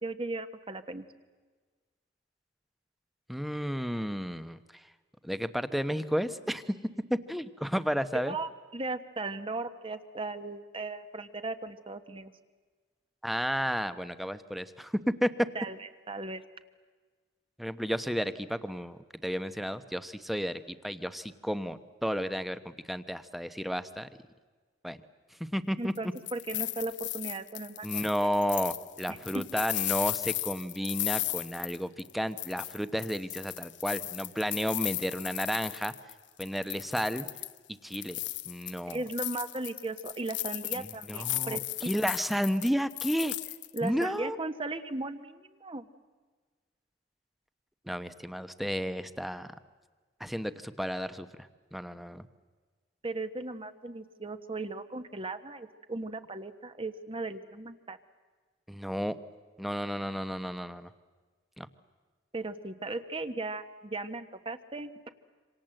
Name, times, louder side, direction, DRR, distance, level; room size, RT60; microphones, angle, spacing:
voice 1, 0.0-1.0 8.1-12.3 15.5-15.8 16.1-16.4 25.8-28.0 29.1-29.5 38.9-41.9 43.7-45.9 53.0-58.0 62.3-65.1, right 2 dB, 30° right, 10 dB, 1.3 m, -37 dB
voice 2, 3.3-4.6 5.2-6.8 7.1-8.4 13.2-15.3 17.6-24.1 24.8-25.0 25.4-25.9 27.8-35.9 36.4-37.3 37.8-38.2 38.4-39.0 40.7-43.4 43.8-44.4 47.9-49.5 50.2-52.3 58.7-59.2 59.6-60.9 61.6-61.7, equal, ahead, 12 dB, 1.0 m, -32 dB
sound 1, 26.0-32.1 32.4-36.1 36.4-37.6 37.9-44.0, left 17 dB, 85° left, 0.8 m, -36 dB
27.0 x 26.5 x 7.8 m, 1.4 s
head